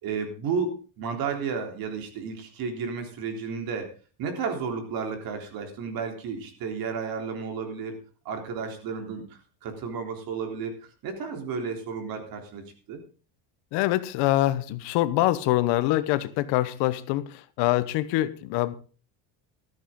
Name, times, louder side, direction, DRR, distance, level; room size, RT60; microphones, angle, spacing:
voice 1, 0.0-3.9 4.2-8.0 8.3-13.0, right 5 dB, 50° right, 3.6 m, -32 dB
voice 2, 13.7-18.7, left 16 dB, 70° left, 1.1 m, -25 dB
14.0 x 13.5 x 3.7 m
cardioid pair, 150°, 44 cm